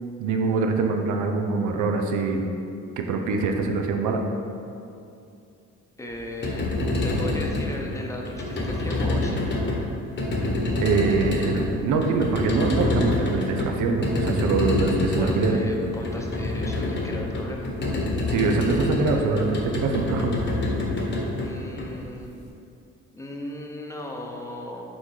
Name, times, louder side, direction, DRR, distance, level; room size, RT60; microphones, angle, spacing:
voice 1, 0.2-2.4 3.0-4.2 10.8-15.6 18.3-20.5, right 4 dB, 80° right, 4 dB, 0.7 m, -24 dB
voice 2, 6.0-6.7 7.0-9.5 15.1-17.7 21.4-22.3 23.1-24.8, left 1 dB, 10° left, 0 dB, 0.8 m, -37 dB
sound 1, 6.2-22.4, left 2 dB, 40° left, 1.2 m, -27 dB
6.1 x 3.8 x 4.8 m, 2.6 s
cardioid pair, 90°, 30 cm